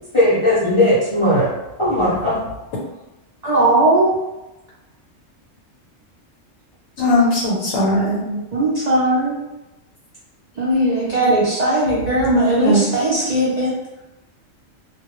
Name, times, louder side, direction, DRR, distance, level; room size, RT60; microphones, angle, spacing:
voice 1, 0.1-1.5 1.8-2.4, left 1 dB, 50° left, -9 dB, 0.3 m, -17 dB
voice 2, 3.4-4.1 8.5-9.4 10.6-13.7, right 1 dB, 75° right, -7 dB, 0.3 m, -18 dB
voice 3, 7.0-8.4 12.4-12.8, left 1 dB, 80° left, -3 dB, 1.0 m, -19 dB
2.2 x 2.1 x 2.9 m, 1.0 s
omnidirectional pair, 1.4 m